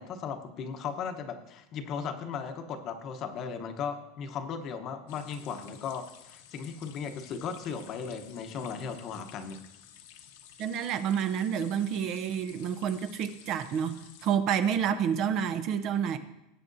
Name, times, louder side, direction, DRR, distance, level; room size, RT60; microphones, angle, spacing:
voice 1, 0.0-9.6, left 6 dB, 35° left, 0.9 m, -37 dB
sound 1, 5.1-14.4, left 10 dB, 70° left, 1.0 m, -53 dB
voice 2, 10.6-16.2, right 8 dB, 40° right, 0.6 m, -29 dB
19.5 x 8.5 x 2.6 m
supercardioid pair, 160°, 0 cm